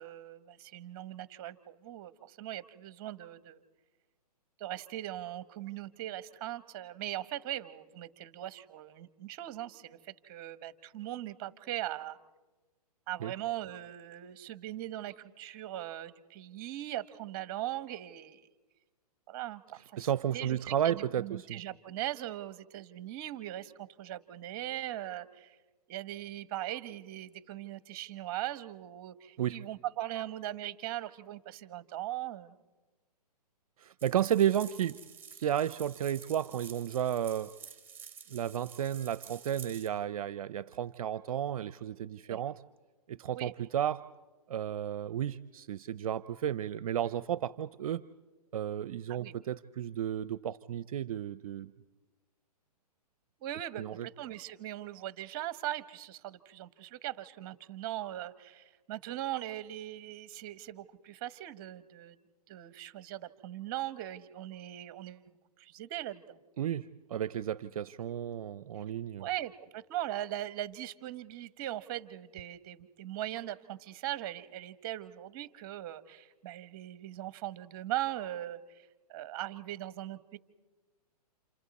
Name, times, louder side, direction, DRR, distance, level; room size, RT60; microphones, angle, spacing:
voice 1, 0.0-3.6 4.6-12.2 13.1-18.5 19.3-20.1 20.3-25.6 25.9-32.5 42.3-42.4 43.3-43.7 49.1-49.3 53.4-62.2 62.5-65.2 65.6-66.4 69.2-80.4, right 13 dB, 35° right, 14 dB, 1.1 m, -40 dB
voice 2, 20.0-21.6 29.4-29.6 33.8-35.0 35.3-37.5 38.3-42.6 43.1-44.1 44.5-48.0 48.5-51.7 53.8-54.1 66.6-69.3, right 10 dB, 60° right, 16 dB, 0.7 m, -33 dB
sound 1, 34.0-39.9, right 7 dB, 10° right, 2.2 m, -50 dB
29.0 x 28.0 x 4.2 m, 1.2 s
hypercardioid pair, 145°, 20 cm